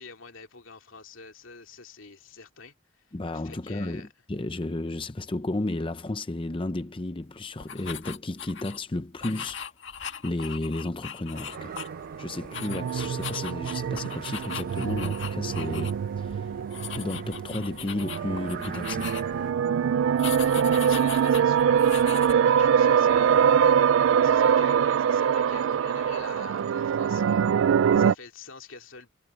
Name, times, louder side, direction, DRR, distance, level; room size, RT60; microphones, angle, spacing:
voice 1, 0.0-3.1 3.3-4.1 20.4-23.7 24.2-27.4 27.7-29.1, left 4 dB, 85° left, 2.6 m, -46 dB
voice 2, 3.1-9.6 10.2-11.7 12.2-16.5 16.9-19.1, left 2 dB, 25° left, 0.6 m, -33 dB
sound 1, 7.6-8.8 9.2-12.1 12.4-15.9 16.2-16.4 16.7-19.5 20.2-22.3, left 7 dB, 65° left, 1.9 m, -39 dB
sound 2, 11.3-19.5, right 4 dB, 45° right, 1.6 m, -45 dB
sound 3, 11.5-28.1, right 7 dB, 80° right, 0.3 m, -24 dB
head